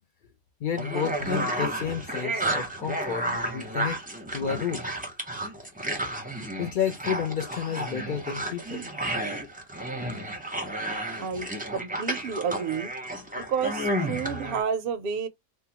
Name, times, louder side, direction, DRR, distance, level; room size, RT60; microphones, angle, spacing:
voice 1, 0.6-4.0 4.3-4.8 6.6-8.9, left 8 dB, 65° left, 0.5 m, -31 dB
sound 1, 0.7-14.6, right 1 dB, 10° right, 0.5 m, -32 dB
voice 2, 11.2-12.9 13.4-15.3, right 6 dB, 60° right, 0.6 m, -30 dB
3.6 x 2.1 x 2.8 m
omnidirectional pair, 1.4 m